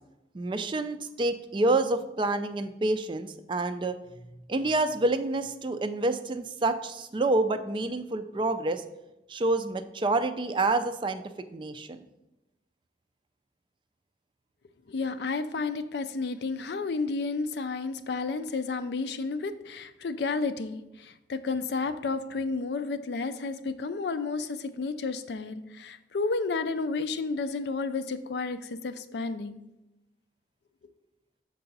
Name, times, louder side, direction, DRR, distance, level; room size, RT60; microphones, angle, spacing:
voice 1, 0.3-4.0 4.5-8.8 9.3-12.0, right 2 dB, 25° right, 9 dB, 0.3 m, -28 dB
voice 2, 14.9-29.6, left 4 dB, 70° left, 11 dB, 0.4 m, -31 dB
6.7 x 4.7 x 4.0 m, 0.96 s
head